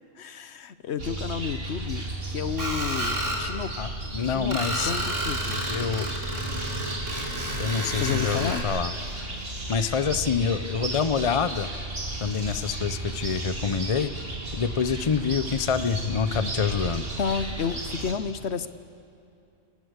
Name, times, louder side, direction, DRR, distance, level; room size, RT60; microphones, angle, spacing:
voice 1, 0.2-3.7 4.2-4.6 4.8-5.6 7.4-7.6 7.9-8.6 16.8-18.7, left 7 dB, 60° left, 14 dB, 1.0 m, -31 dB
sound 1, 1.0-18.1, right 2 dB, 50° right, 2.8 m, -34 dB
Screech, 2.6-3.4 4.5-8.6, right 1 dB, 70° right, 4.3 m, -31 dB
voice 2, 3.8-4.9 5.7-6.1 7.6-8.9 9.7-11.7 12.2-14.1 14.5-17.1, left 6 dB, 35° left, 13 dB, 0.6 m, -26 dB
29.0 x 19.0 x 8.1 m, 2.8 s
omnidirectional pair, 1.3 m